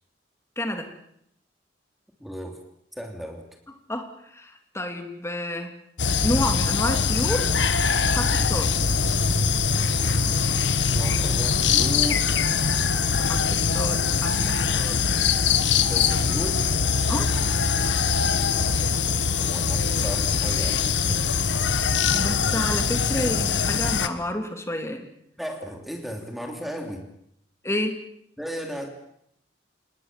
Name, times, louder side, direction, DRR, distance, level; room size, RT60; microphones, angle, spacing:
voice 1, 0.6-0.9 3.9-5.7 6.2-7.5 8.0-8.7 13.1-15.0 17.1-17.3 22.1-25.1 27.6-28.0, left 1 dB, 15° left, 5 dB, 2.9 m, -30 dB
voice 2, 2.2-2.6 3.0-3.4 10.9-12.4 15.9-16.6 19.4-21.2 25.4-27.1 28.4-28.9, equal, ahead, 3 dB, 3.2 m, -35 dB
sound 1, 6.0-24.1, left 5 dB, 85° left, 1.5 m, -23 dB
27.0 x 20.5 x 7.5 m, 0.73 s
head